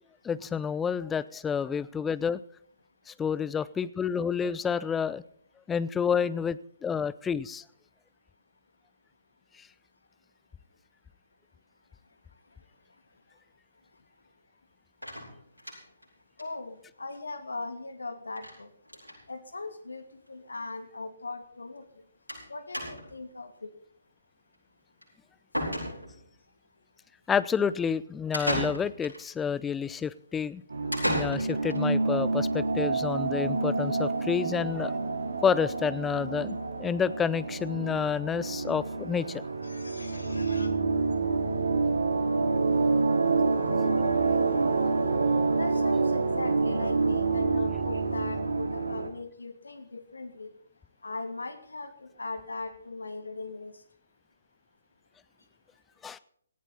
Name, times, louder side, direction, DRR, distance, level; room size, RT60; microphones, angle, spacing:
voice 1, 0.2-2.4 3.1-5.2 5.7-7.6 27.3-30.6 31.1-34.9 35.4-39.4 56.0-56.2, left 7 dB, 10° left, 17 dB, 0.6 m, -29 dB
sound 1, 15.0-16.0 16.4-16.5 16.8-16.9 17.1-17.2 18.4-18.6 18.8-19.2 20.1-20.2 20.4-20.5 22.3-22.5 22.7-23.2 25.0-25.1 25.5-26.3 28.3-29.2 30.9-31.8, equal, 90° right, 7.9 m, -33 dB
voice 2, 16.4-18.7 19.3-20.0 20.3-21.8 22.5-23.5 39.6-40.7 45.5-50.5 51.0-53.7, left 3 dB, 70° left, 8 dB, 2.8 m, -39 dB
sound 2, 30.7-49.1, right 3 dB, 70° right, 2.6 m, -28 dB
18.0 x 14.5 x 4.1 m, 0.64 s
figure-of-eight pair, 135°, 0 cm